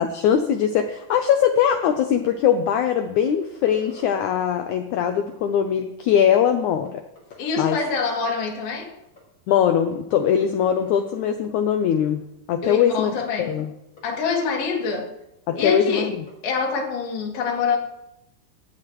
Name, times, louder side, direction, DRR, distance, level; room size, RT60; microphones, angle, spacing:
voice 1, 0.0-7.0 7.6-7.8 9.5-12.2 12.5-13.7 15.5-16.1, left 8 dB, 90° left, 6 dB, 1.7 m, -21 dB
sound 1, 1.8-2.0 2.3-2.4 2.8-4.5 5.1-5.3 6.0-6.5 6.8-6.9 7.2-8.4 8.7-8.8 9.0-9.2 9.5-9.6 9.9-11.2 12.0-12.1 12.6-12.7 13.1-13.2 13.6-13.7 14.0-14.9 16.3-16.5, left 3 dB, 20° left, 5.2 m, -48 dB
voice 2, 7.4-8.9 12.6-13.5 14.0-15.1 15.6-16.1 16.4-17.8, left 5 dB, 70° left, 0 dB, 3.7 m, -25 dB
18.5 x 13.5 x 3.1 m, 0.84 s
omnidirectional pair, 4.4 m